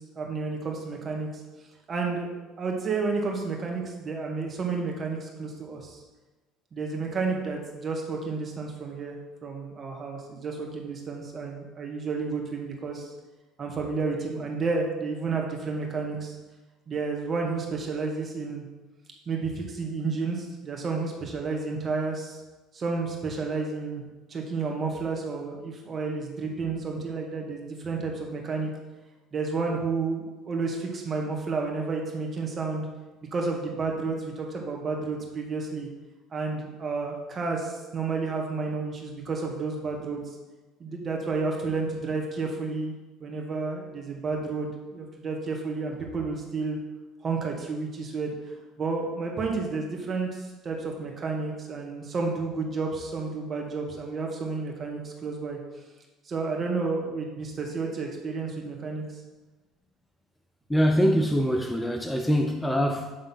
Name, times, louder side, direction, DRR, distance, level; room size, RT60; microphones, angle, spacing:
voice 1, 0.2-1.3 1.9-2.3 2.6-6.0 6.7-13.1 13.6-16.4 16.9-18.6 19.3-22.4 22.7-24.0 24.3-28.7 29.3-32.9 33.3-35.9 36.3-40.2 40.8-42.9 43.2-46.8 47.2-55.6 56.3-59.2, right 4 dB, 40° right, 0 dB, 1.9 m, -31 dB
voice 2, 60.7-63.2, equal, 10° left, 4 dB, 0.7 m, -24 dB
8.3 x 3.7 x 5.9 m, 1.1 s
hypercardioid pair, 65°, 0 cm